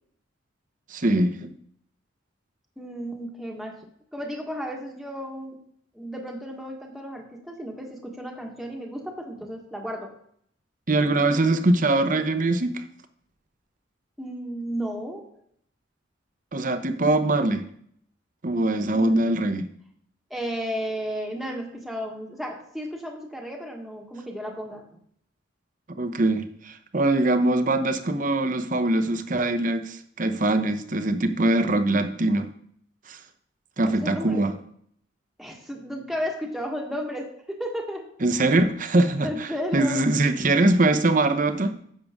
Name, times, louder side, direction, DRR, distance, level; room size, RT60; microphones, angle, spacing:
voice 1, 0.9-1.5 10.9-12.8 16.5-17.6 18.4-19.7 26.0-32.5 33.1-33.2 33.8-34.5 38.2-41.8, right 2 dB, 40° right, 8 dB, 0.8 m, -22 dB
voice 2, 2.8-3.8 4.1-5.6 5.9-10.1 14.2-15.3 18.9-19.2 20.3-25.0 33.8-34.5 35.4-38.1 39.2-40.0, equal, ahead, 0 dB, 1.4 m, -33 dB
10.5 x 7.7 x 3.6 m, 0.65 s
head